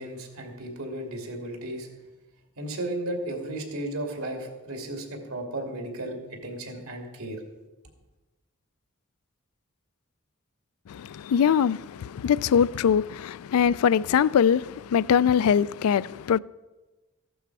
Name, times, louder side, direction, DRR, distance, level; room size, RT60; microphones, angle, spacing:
voice 1, 0.0-1.9 2.6-6.2 6.4-7.4, right 1 dB, 80° right, 2.6 m, -34 dB
voice 2, 10.9-16.4, left 7 dB, 80° left, 0.3 m, -22 dB
15.0 x 11.5 x 4.8 m
head